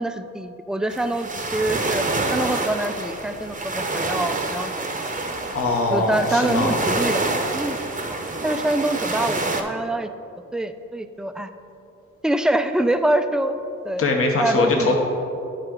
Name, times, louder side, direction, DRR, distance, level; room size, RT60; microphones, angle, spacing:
voice 1, 0.0-2.0 2.3-4.7 5.9-7.2 7.5-8.1 8.4-10.1 10.5-11.5 12.2-13.6 13.8-14.1 14.4-15.0, right 1 dB, ahead, 9 dB, 0.4 m, -25 dB
sound 1, 0.9-9.6, right 2 dB, 25° right, 0.8 m, -27 dB
voice 2, 5.5-6.7 14.0-15.0, left 3 dB, 45° left, 1 dB, 0.9 m, -21 dB
8.9 x 5.1 x 3.7 m, 2.8 s
supercardioid pair, 50°, 32 cm